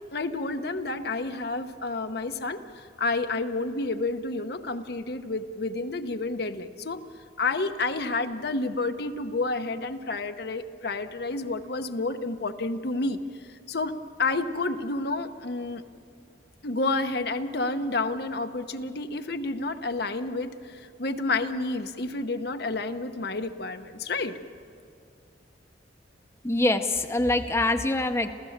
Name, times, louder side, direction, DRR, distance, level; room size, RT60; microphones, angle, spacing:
voice 1, 0.1-7.0 7.4-13.9 14.2-15.8 16.6-24.3, left 3 dB, 60° left, 7 dB, 0.9 m, -30 dB
voice 2, 26.4-28.3, left 2 dB, 15° left, 6 dB, 0.7 m, -24 dB
28.0 x 16.0 x 7.3 m, 2.3 s
head